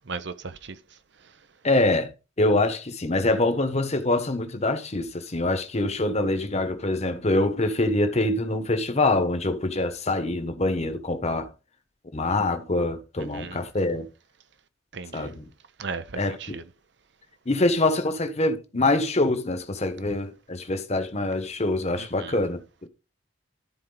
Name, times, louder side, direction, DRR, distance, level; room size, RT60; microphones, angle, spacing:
voice 1, 0.1-0.8 13.2-13.6 14.9-15.4 15.8-16.6 21.9-22.4, right 4 dB, 65° right, 0.8 m, -36 dB
voice 2, 1.6-2.1 2.4-11.5 12.1-14.1 15.1-15.5 16.2-16.6 17.5-22.6, left 2 dB, 35° left, 1.2 m, -25 dB
13.0 x 4.5 x 3.9 m
head